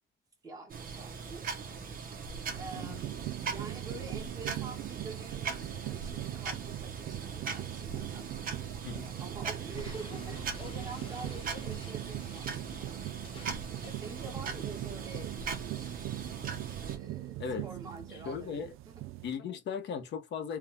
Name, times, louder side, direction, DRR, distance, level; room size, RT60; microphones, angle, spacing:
voice 1, 0.4-1.5 2.6-8.3 8.9-13.0 13.8-16.1 16.8-19.1, right 3 dB, 15° right, 1.4 m, -47 dB
sound 1, 0.7-17.0, right 5 dB, 40° right, 0.9 m, -40 dB
sound 2, 2.5-19.3, right 17 dB, 80° right, 0.4 m, -41 dB
Explosion, 9.7-14.5, left 5 dB, 25° left, 0.6 m, -52 dB
voice 2, 18.2-18.7 19.2-20.6, left 6 dB, 55° left, 1.0 m, -37 dB
4.7 x 2.3 x 3.4 m
cardioid pair, 175°, 21 cm